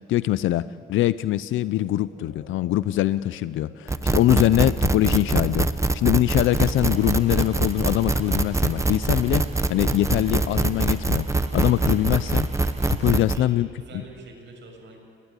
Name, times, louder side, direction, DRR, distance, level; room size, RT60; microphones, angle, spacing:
voice 1, 0.1-5.7 5.9-9.4 9.7-12.5 12.9-13.7 13.9-14.0, left 14 dB, 80° left, 15 dB, 0.6 m, -23 dB
sound 1, 1.2-12.6, left 2 dB, 60° left, 5.5 m, -52 dB
sound 2, 3.9-13.4, right 2 dB, 15° right, 1.0 m, -23 dB
sound 3, 6.3-13.1, right 3 dB, 35° right, 5.4 m, -47 dB
voice 2, 13.0-15.0, right 4 dB, 65° right, 2 dB, 7.1 m, -45 dB
29.5 x 20.0 x 9.9 m, 2.5 s
cardioid pair, 120°, 20 cm